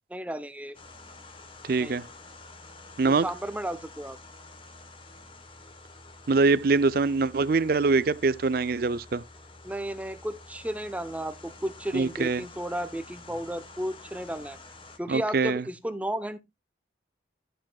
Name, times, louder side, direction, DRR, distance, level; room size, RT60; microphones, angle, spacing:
voice 1, 0.1-0.8 1.8-2.0 3.1-4.2 9.6-14.6 15.0-16.4, right 1 dB, 10° right, 0.7 m, -33 dB
sound 1, 0.7-15.0, left 3 dB, 30° left, 1.1 m, -49 dB
voice 2, 1.6-2.0 3.0-3.3 6.3-9.2 11.9-12.4 15.1-15.6, right 4 dB, 55° right, 0.5 m, -23 dB
13.0 x 7.5 x 2.3 m
head